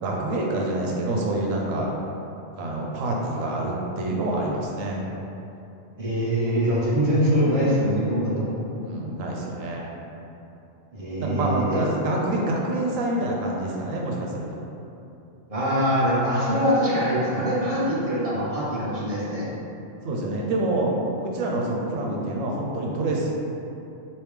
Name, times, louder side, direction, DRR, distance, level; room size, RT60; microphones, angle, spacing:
voice 1, 0.0-1.9 2.6-5.0 8.8-9.9 11.2-14.6 20.0-21.0 21.2-23.3, right 2 dB, 75° right, -2 dB, 1.0 m, -27 dB
voice 2, 6.0-8.5 10.9-11.8 15.5-19.5, equal, 40° right, -8 dB, 0.6 m, -23 dB
3.4 x 2.9 x 3.1 m, 2.8 s
omnidirectional pair, 1.4 m